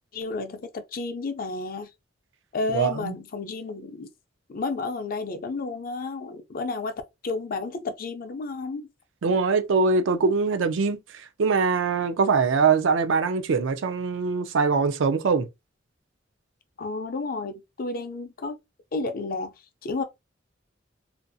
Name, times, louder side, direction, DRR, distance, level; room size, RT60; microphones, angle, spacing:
voice 1, 0.1-1.9 2.5-4.1 4.5-6.9 7.2-8.9 9.3-9.4 16.8-18.6 18.9-19.5 19.8-20.0, left 3 dB, 50° left, 0.4 m, -31 dB
voice 2, 2.7-3.2 9.2-15.5, right 4 dB, 80° right, 0.4 m, -23 dB
2.5 x 2.3 x 2.5 m
head